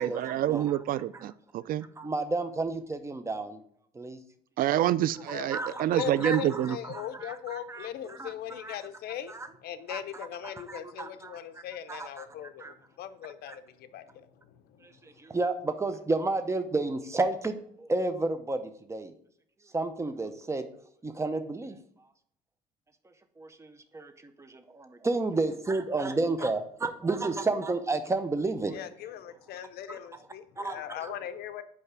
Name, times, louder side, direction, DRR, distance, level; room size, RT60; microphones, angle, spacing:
voice 1, 0.0-1.9 4.6-6.8, right 12 dB, 60° right, 18 dB, 0.4 m, -27 dB
voice 2, 2.0-3.6 3.9-4.2 5.5-6.6 6.9-8.8 9.3-9.5 9.9-10.0 10.4-11.4 11.9-12.2 12.6-12.7 13.5-13.6 15.0-19.1 19.7-20.7 21.0-21.8 23.4-28.7 29.9-30.0 30.6-31.1, right 3 dB, 15° right, 10 dB, 0.7 m, -31 dB
voice 3, 5.3-9.3 9.6-15.0 26.4-26.5 28.7-31.6, left 9 dB, 70° left, 10 dB, 0.6 m, -40 dB
5.6 x 4.8 x 6.1 m, 0.66 s
cardioid pair, 110°, 17 cm